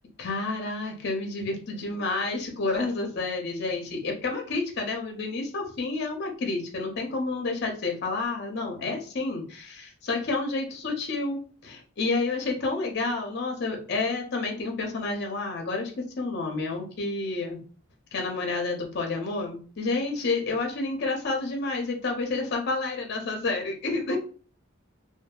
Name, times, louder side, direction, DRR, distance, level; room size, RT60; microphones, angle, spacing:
voice 1, 0.2-17.6 18.1-24.2, left 3 dB, 55° left, 2 dB, 0.6 m, -30 dB
2.6 x 2.6 x 2.3 m, 0.40 s
head